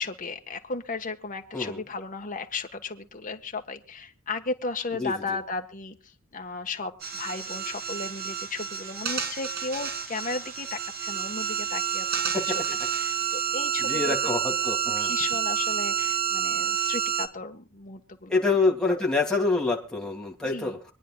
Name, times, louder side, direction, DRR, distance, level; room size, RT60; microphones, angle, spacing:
voice 1, 0.0-6.0 6.3-14.3 14.8-18.4 18.9-19.0 20.4-20.8, left 3 dB, 40° left, 5 dB, 1.4 m, -35 dB
voice 2, 5.0-5.4 12.3-12.4 13.8-15.1 18.3-20.8, left 3 dB, 5° left, -2 dB, 2.8 m, -26 dB
sound 1, 7.0-17.3, right 8 dB, 50° right, 1.9 m, -29 dB
25.5 x 10.5 x 2.4 m, 0.34 s
head